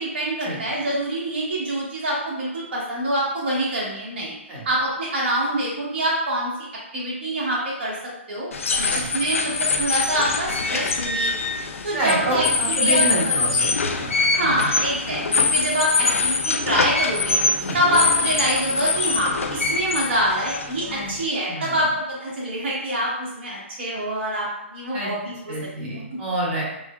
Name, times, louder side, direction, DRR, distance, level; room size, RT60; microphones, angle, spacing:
voice 1, 0.0-4.3 4.6-6.5 6.9-7.9 8.3-8.5 8.8-11.5 11.8-13.8 14.3-17.4 17.7-25.3, right 1 dB, 55° right, -6 dB, 1.3 m, -25 dB
sound 1, 8.5-21.2, left 4 dB, 85° left, 0.5 m, -23 dB
voice 2, 11.9-14.1 14.4-14.7 17.6-17.8 20.8-21.1 21.5-21.8 24.9-25.1 25.5-26.6, right 1 dB, 25° right, -5 dB, 1.3 m, -27 dB
6.0 x 2.1 x 2.3 m, 0.83 s
hypercardioid pair, 150°, 7 cm